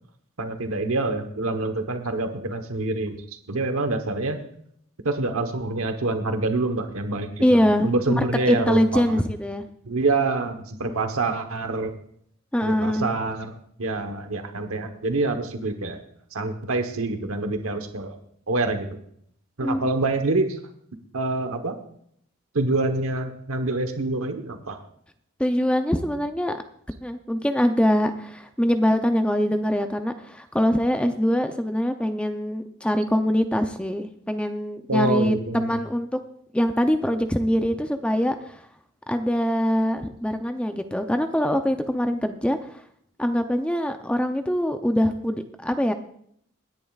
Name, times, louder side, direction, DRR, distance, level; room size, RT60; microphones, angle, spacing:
voice 1, 0.4-3.2 3.5-4.4 5.0-7.4 7.8-9.2 9.8-11.9 12.6-16.0 16.3-18.2 18.5-19.0 19.6-20.6 21.1-21.8 22.5-24.8 34.9-35.8, right 2 dB, 85° right, 7 dB, 1.1 m, -26 dB
voice 2, 7.4-7.9 8.2-9.6 10.8-11.0 12.5-13.1 19.6-19.9 25.4-26.6 27.0-36.2 36.5-38.6 39.1-42.8 43.2-45.9, equal, 5° left, 7 dB, 0.5 m, -23 dB
24.5 x 10.5 x 2.4 m, 0.68 s
head